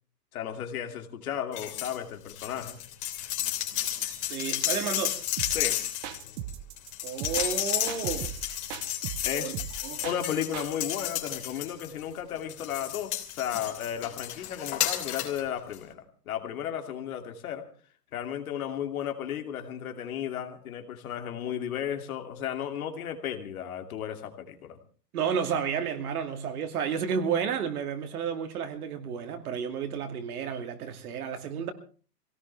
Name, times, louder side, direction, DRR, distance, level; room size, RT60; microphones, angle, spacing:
voice 1, 0.3-2.8 5.5-5.8 9.2-9.5 10.0-17.7 18.1-24.8, left 9 dB, 60° left, 2.7 m, -34 dB
sound 1, 1.5-2.0 2.3-12.0 12.5-15.4 15.7-15.8, left 13 dB, 45° left, 3.3 m, -32 dB
voice 2, 4.3-5.2 7.0-8.3 9.3-9.5 9.8-10.0 25.1-31.7, right 7 dB, 65° right, 2.6 m, -31 dB
sound 2, 5.4-10.7, right 11 dB, 25° right, 0.7 m, -38 dB
23.5 x 17.5 x 3.4 m
hypercardioid pair, 145°, 48 cm